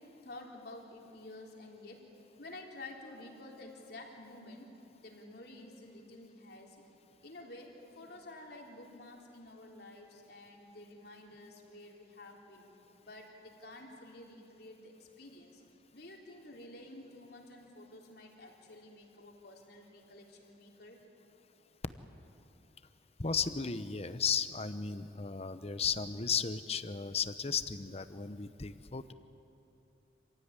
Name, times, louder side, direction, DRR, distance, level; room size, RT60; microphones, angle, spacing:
voice 1, 0.2-2.0 2.3-4.7 5.0-6.8 7.2-12.6 13.0-15.6 15.9-21.0, left 2 dB, 60° left, 0 dB, 3.7 m, -51 dB
voice 2, 23.2-29.1, left 6 dB, 35° left, 12 dB, 0.9 m, -35 dB
27.0 x 16.0 x 9.7 m, 2.8 s
head